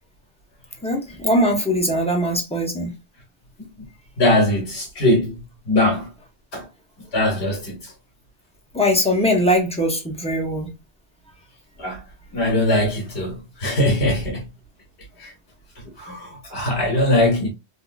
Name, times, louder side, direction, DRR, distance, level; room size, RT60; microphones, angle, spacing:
voice 1, 0.8-2.9 8.7-10.7, equal, 10° left, 0.5 m, -21 dB
voice 2, 4.2-5.4 5.7-6.1 6.5-6.6 7.1-7.9 11.8-12.0 12.3-14.5 15.2-15.3 16.0-17.5, left 1 dB, 65° left, 1.5 m, -21 dB
3.5 x 2.4 x 2.3 m
omnidirectional pair, 1.1 m